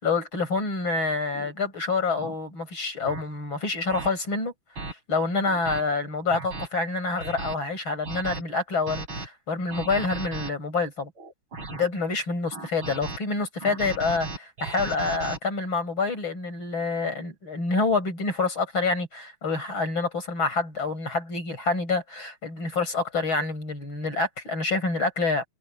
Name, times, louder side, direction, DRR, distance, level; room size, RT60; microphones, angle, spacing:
voice 1, 0.0-4.5 4.9-11.1 11.7-25.4, left 3 dB, 70° left, 7.7 m, -27 dB
sound 1, 1.3-1.5 2.2-2.3 3.0-3.2 3.9-4.1 4.8-4.9 5.5-5.8 6.3-6.7 7.2-7.5 8.0-8.4 8.9-9.3 9.7-10.5 11.2-11.9 12.5-13.2 13.6-15.4, right 3 dB, 75° right, 6.6 m, -36 dB
omnidirectional pair, 2.3 m